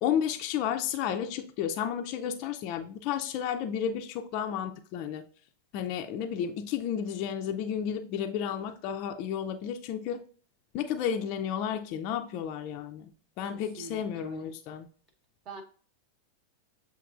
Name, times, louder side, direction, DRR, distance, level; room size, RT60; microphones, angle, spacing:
voice 1, 0.0-5.2 5.7-10.2 10.7-13.1 13.4-14.9, left 8 dB, 40° left, 0.4 m, -32 dB
voice 2, 13.4-14.5 15.4-15.6, right 4 dB, 35° right, 0.9 m, -45 dB
7.6 x 2.9 x 2.4 m
figure-of-eight pair, 90°, 0 cm